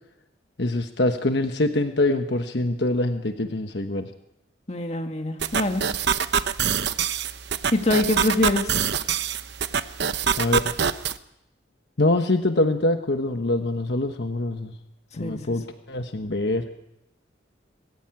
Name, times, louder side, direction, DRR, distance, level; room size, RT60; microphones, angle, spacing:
voice 1, 0.6-4.1 10.4-10.6 12.0-14.7 15.2-16.6, left 2 dB, 65° left, 6 dB, 1.2 m, -24 dB
voice 2, 4.7-5.8 7.7-8.8 15.2-15.4, left 2 dB, 35° left, 5 dB, 2.0 m, -24 dB
sound 1, 5.4-11.2, right 7 dB, 65° right, 0.9 m, -25 dB
22.0 x 15.5 x 8.9 m, 0.86 s
head